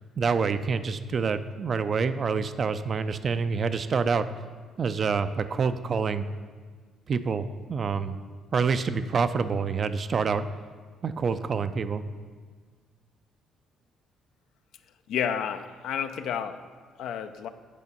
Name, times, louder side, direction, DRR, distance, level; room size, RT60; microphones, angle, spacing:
voice 1, 0.2-4.3 4.8-6.3 7.1-8.2 8.5-10.5 11.0-12.0, right 5 dB, 45° right, 11 dB, 0.4 m, -27 dB
voice 2, 15.1-16.6 17.0-17.5, left 8 dB, 70° left, 9 dB, 0.4 m, -30 dB
8.4 x 4.2 x 5.4 m, 1.5 s
hypercardioid pair, 50°, 0 cm